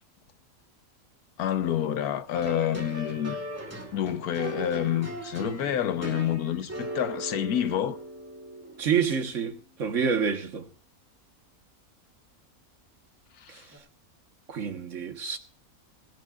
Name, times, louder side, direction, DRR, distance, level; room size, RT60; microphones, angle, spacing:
voice 1, 1.4-3.4 3.9-8.0 13.4-13.6, left 10 dB, 85° left, 1.4 m, -28 dB
sound 1, 2.3-9.1 13.7-13.8, right 1 dB, 10° right, 2.7 m, -38 dB
voice 2, 8.8-10.7 13.5-13.6 14.5-15.4, right 6 dB, 60° right, 1.7 m, -28 dB
27.0 x 12.0 x 2.5 m
omnidirectional pair, 1.5 m